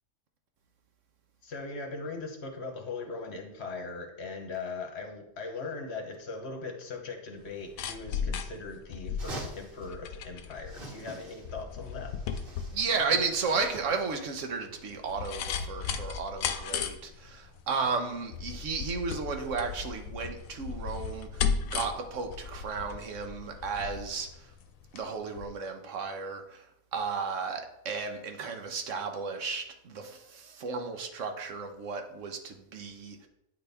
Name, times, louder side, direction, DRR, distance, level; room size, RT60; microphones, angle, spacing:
voice 1, 1.4-12.1, left 3 dB, 55° left, 3 dB, 1.0 m, -39 dB
sound 1, 7.4-25.1 25.4-25.5, left 7 dB, 80° left, 1.0 m, -36 dB
sound 2, 9.2-9.9 10.6-11.6 11.8-14.0, right 2 dB, 45° right, 1.3 m, -45 dB
voice 2, 12.7-24.5 24.9-26.7 26.9-33.3, right 4 dB, 65° right, 5 dB, 1.1 m, -34 dB
9.0 x 4.0 x 3.4 m, 0.82 s
omnidirectional pair, 1.4 m